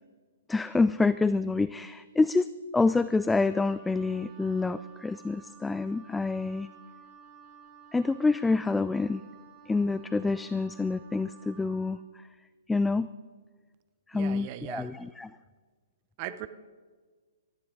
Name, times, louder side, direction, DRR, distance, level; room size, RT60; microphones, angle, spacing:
voice 1, 0.5-2.5 2.7-6.7 7.9-9.2 9.7-12.0 12.7-13.1 14.1-15.3 16.3-16.5, left 3 dB, 5° left, 15 dB, 0.3 m, -27 dB
Wind instrument woodwind instrument, 2.8-12.0, right 6 dB, 10° right, 5.4 m, -54 dB
voice 2, 14.1-14.9 16.2-16.5, right 14 dB, 40° right, 13 dB, 0.9 m, -38 dB
19.5 x 13.5 x 3.9 m, 1.4 s
figure-of-eight pair, 120°, 0 cm